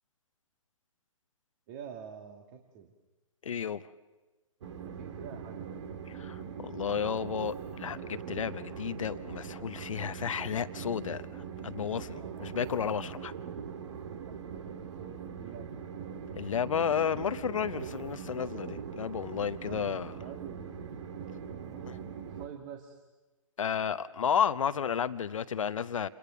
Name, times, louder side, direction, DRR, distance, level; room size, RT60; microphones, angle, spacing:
voice 1, 1.7-2.9 4.9-5.6 12.1-12.6 14.3-15.7 19.7-21.0 21.5-23.0, right 7 dB, 35° right, 4 dB, 1.8 m, -47 dB
voice 2, 3.4-3.8 6.1-13.3 16.3-20.1 21.9-22.0 23.6-26.1, left 7 dB, 70° left, 12 dB, 0.9 m, -32 dB
Train, 4.6-22.5, right 7 dB, 60° right, 1.8 m, -41 dB
28.0 x 22.5 x 6.8 m, 1.2 s
hypercardioid pair, 145°, 17 cm